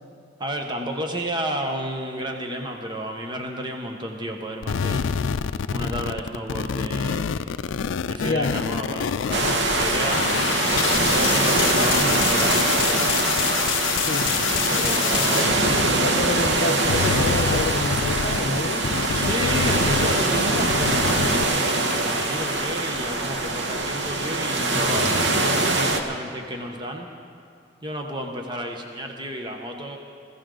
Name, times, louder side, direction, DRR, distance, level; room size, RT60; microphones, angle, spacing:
voice 1, 0.4-5.0 5.7-7.3 8.1-13.0 14.6-15.6 19.1-27.1 27.8-30.0, equal, 25° right, 3 dB, 1.1 m, -32 dB
sound 1, 4.6-16.6 16.8-21.4, left 8 dB, 85° left, 0.4 m, -27 dB
voice 2, 8.2-8.6 14.1-14.3 15.3-15.4 15.9-18.8, left 2 dB, 55° left, 6 dB, 0.8 m, -28 dB
sound 2, 9.3-26.0, right 2 dB, 70° right, 1.1 m, -23 dB
20.5 x 15.5 x 3.9 m, 2.5 s
head